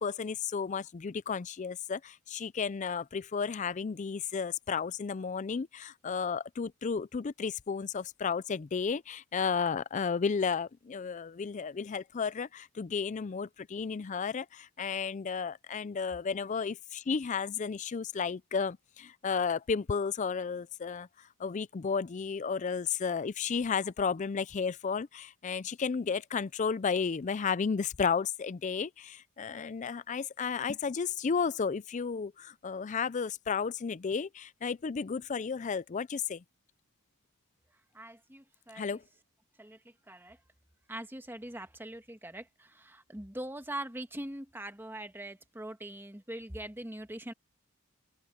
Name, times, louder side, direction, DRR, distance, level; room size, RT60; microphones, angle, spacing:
voice 1, 0.0-36.4 38.7-39.0, left 5 dB, 35° left, 0.4 m, -33 dB
voice 2, 37.9-39.0 39.6-40.4 40.9-47.3, right 1 dB, 10° right, 1.4 m, -42 dB
open air
head